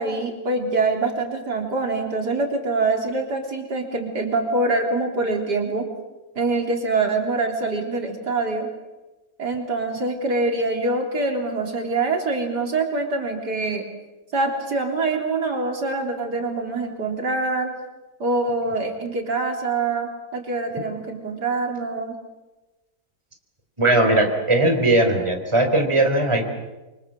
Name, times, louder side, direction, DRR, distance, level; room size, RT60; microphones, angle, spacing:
voice 1, 0.0-5.9 6.4-8.7 9.4-13.8 14.3-17.7 18.2-22.2, right 3 dB, 75° right, 2 dB, 4.1 m, -24 dB
voice 2, 23.8-26.5, right 2 dB, 15° right, 4 dB, 3.7 m, -19 dB
28.0 x 25.0 x 7.6 m, 1.1 s
omnidirectional pair, 1.8 m